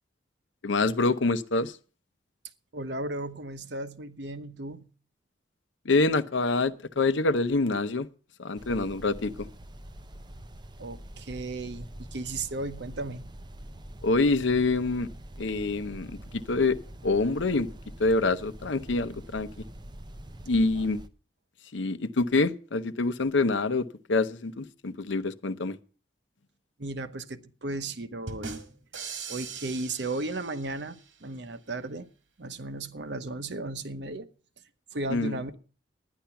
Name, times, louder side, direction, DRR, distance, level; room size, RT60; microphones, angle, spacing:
voice 1, 0.6-1.8 5.8-8.1 8.4-9.5 14.0-15.1 15.4-16.8 17.0-17.7 18.0-19.5 20.5-21.0 21.7-25.8 35.1-35.4, left 3 dB, 75° left, 0.8 m, -26 dB
voice 2, 2.7-4.9 10.8-13.3 20.8-20.9 26.8-28.6 29.3-32.1 32.4-34.3 34.9-35.6, right 2 dB, 60° right, 0.9 m, -35 dB
sound 1, 8.5-21.1, right 1 dB, 25° right, 0.6 m, -45 dB
sound 2, 28.3-31.1, right 5 dB, 80° right, 1.9 m, -41 dB
11.5 x 10.5 x 5.8 m
head